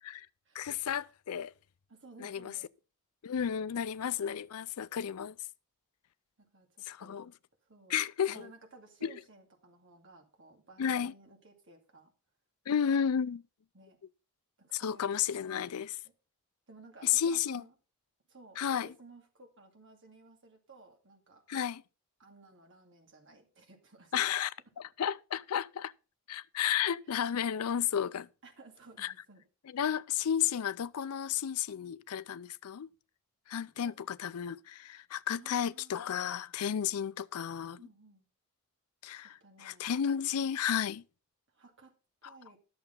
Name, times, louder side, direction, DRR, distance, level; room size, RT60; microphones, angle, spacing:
voice 1, 0.5-1.5 2.2-2.5 3.2-5.4 6.9-7.3 7.9-8.4 9.0-9.1 10.8-11.1 12.7-13.4 14.7-16.0 17.0-17.6 18.6-18.9 21.5-21.8 24.1-24.5 24.8-25.9 26.3-28.3 29.0-29.1 29.7-32.9 33.5-37.8 39.0-41.0 42.2-42.3, left 8 dB, 75° left, 0.4 m, -32 dB
voice 2, 1.9-2.7 3.6-3.9 6.4-7.2 7.7-8.0 8.3-12.1 13.7-14.0 14.6-16.1 16.7-17.7 18.3-21.4 22.2-24.1 28.4-29.4 33.8-34.0 35.3-35.9 37.8-38.3 39.2-39.9 41.5-41.9 42.2-42.6, right 3 dB, 55° right, 2.3 m, -57 dB
11.5 x 6.9 x 5.3 m
head